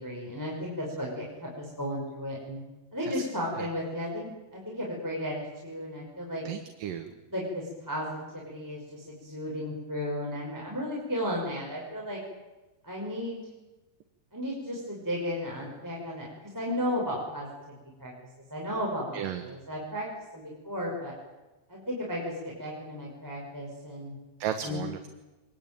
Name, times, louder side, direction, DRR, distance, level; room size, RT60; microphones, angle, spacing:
voice 1, 0.0-2.6 2.9-6.4 7.0-12.2 12.8-13.5 14.3-18.1 18.5-21.1 21.7-24.1 24.6-24.8, equal, 5° right, -3 dB, 5.5 m, -34 dB
voice 2, 6.5-7.1 19.1-19.4 24.4-25.1, right 9 dB, 70° right, 7 dB, 2.8 m, -34 dB
25.5 x 21.0 x 9.2 m, 1.1 s
omnidirectional pair, 4.2 m